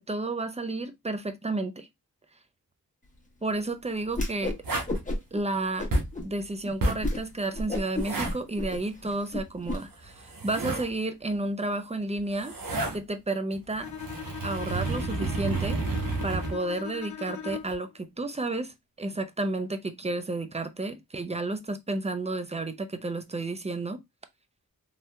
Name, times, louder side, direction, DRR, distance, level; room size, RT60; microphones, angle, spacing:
voice 1, 0.0-1.9 3.4-4.6 5.3-5.9 6.2-12.5 12.9-13.9 14.4-24.0, right 2 dB, 20° right, 0.5 m, -31 dB
Whoosh swoosh swish, 4.1-4.6 4.9-5.4 5.8-6.3 6.6-6.7 7.0-7.2 7.5-9.8, left 1 dB, 20° left, 1.2 m, -31 dB
sound 1, 4.6-5.0 5.9-6.2 6.8-7.1 7.9-8.4 9.9-10.9 12.2-13.0 13.5-16.5 17.5-17.7, right 2 dB, 65° right, 1.1 m, -30 dB
Bowed string instrument, 13.8-17.9, left 8 dB, 55° left, 0.5 m, -40 dB
3.3 x 2.8 x 2.3 m
cardioid pair, 55°, 36 cm